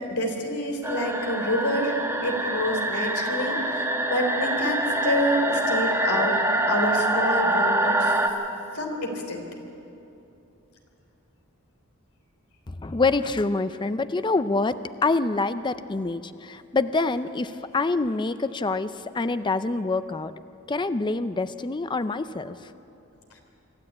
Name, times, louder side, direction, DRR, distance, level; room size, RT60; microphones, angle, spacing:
voice 1, 0.0-6.4 6.7-8.2 8.7-9.4, left 1 dB, 70° left, 3 dB, 3.5 m, -27 dB
sound 1, 0.8-8.3, right 1 dB, 10° right, 1.3 m, -25 dB
voice 2, 12.7-20.3 20.7-22.7, left 3 dB, 20° left, 12 dB, 0.5 m, -26 dB
25.0 x 13.5 x 8.6 m, 2.8 s
head